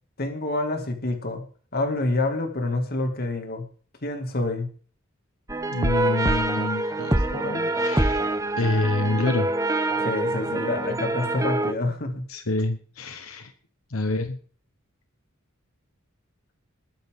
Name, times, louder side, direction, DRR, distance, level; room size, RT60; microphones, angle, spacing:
voice 1, 0.2-1.4 1.7-3.6 4.0-4.7 10.0-12.3, left 2 dB, 50° left, 4 dB, 2.4 m, -27 dB
sound 1, 5.5-11.7, right 2 dB, 15° right, 0.9 m, -25 dB
voice 2, 5.7-8.3 8.6-9.5 12.3-13.5 13.9-14.4, left 2 dB, 85° left, 7 dB, 1.3 m, -27 dB
20.5 x 10.0 x 3.8 m, 0.43 s
head